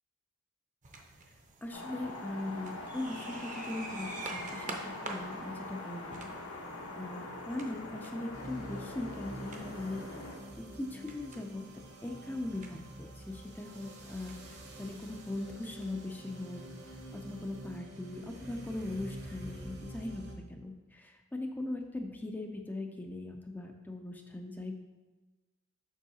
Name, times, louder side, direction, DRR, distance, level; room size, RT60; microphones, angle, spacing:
sound 1, 0.8-17.8, right 3 dB, 35° right, 0.6 m, -50 dB
voice 1, 1.6-6.3 7.0-10.1 10.6-11.6 12.0-24.8, left 2 dB, 10° left, 3 dB, 0.3 m, -40 dB
sound 2, 1.7-10.4, left 2 dB, 85° left, 1.1 m, -43 dB
ambient-break, 8.3-20.4, right 1 dB, 55° right, 1.0 m, -47 dB
7.2 x 5.4 x 2.7 m, 1.2 s
head